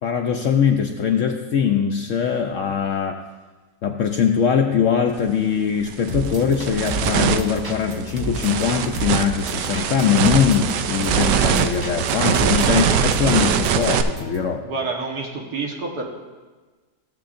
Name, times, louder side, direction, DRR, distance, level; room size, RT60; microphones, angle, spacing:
voice 1, 0.0-3.2 3.8-14.6, left 7 dB, 65° left, 3 dB, 0.8 m, -21 dB
sound 1, 5.2-5.3 5.8-14.0, right 8 dB, 90° right, 1.2 m, -22 dB
sound 2, 6.1-14.4, right 1 dB, 25° right, 0.5 m, -32 dB
voice 2, 12.6-12.9 14.6-16.0, right 4 dB, 70° right, -1 dB, 1.8 m, -28 dB
16.0 x 7.5 x 2.5 m, 1.3 s
omnidirectional pair, 1.8 m